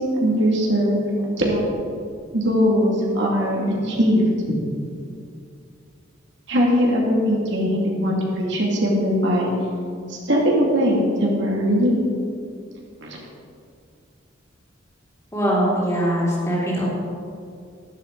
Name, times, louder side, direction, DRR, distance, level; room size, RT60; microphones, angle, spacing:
voice 1, 0.0-1.6 2.3-4.5 6.5-9.5 10.1-12.0 13.0-13.2, equal, 65° right, -3 dB, 2.3 m, -20 dB
voice 2, 15.3-16.9, equal, 15° left, -6 dB, 3.3 m, -21 dB
12.0 x 11.5 x 3.9 m, 2.3 s
head